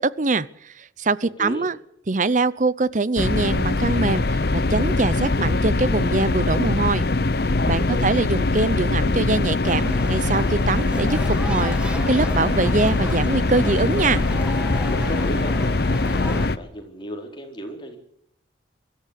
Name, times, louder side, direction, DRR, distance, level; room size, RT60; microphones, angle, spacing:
voice 1, 0.0-1.8 2.1-7.0 7.7-14.2, right 3 dB, 40° right, 19 dB, 0.7 m, -23 dB
sound 1, 3.2-16.6, left 2 dB, 55° left, 0.8 m, -22 dB
voice 2, 7.6-8.1 14.8-15.6 16.1-18.0, equal, 25° left, 2 dB, 4.3 m, -34 dB
sound 2, 9.6-16.5, equal, 5° right, 1.6 m, -35 dB
24.0 x 13.5 x 8.3 m, 0.72 s
head